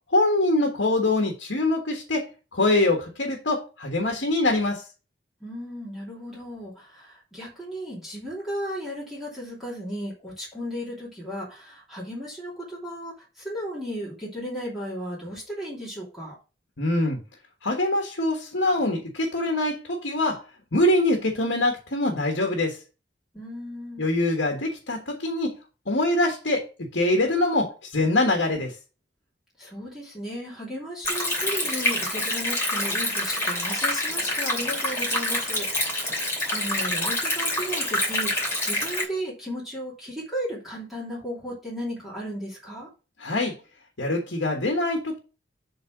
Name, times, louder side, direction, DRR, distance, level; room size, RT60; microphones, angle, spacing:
voice 1, 0.1-2.3 2.5-4.8 16.8-17.2 17.6-20.4 20.7-22.8 24.0-25.6 25.9-26.7 26.9-28.7 43.2-43.5 44.0-45.2, left 2 dB, 80° left, 1.6 m, -24 dB
voice 2, 5.4-16.3 23.3-24.0 29.6-42.9, equal, ahead, 2.9 m, -35 dB
Stream, 31.0-39.0, left 1 dB, 15° left, 2.7 m, -26 dB
7.6 x 4.0 x 6.0 m
head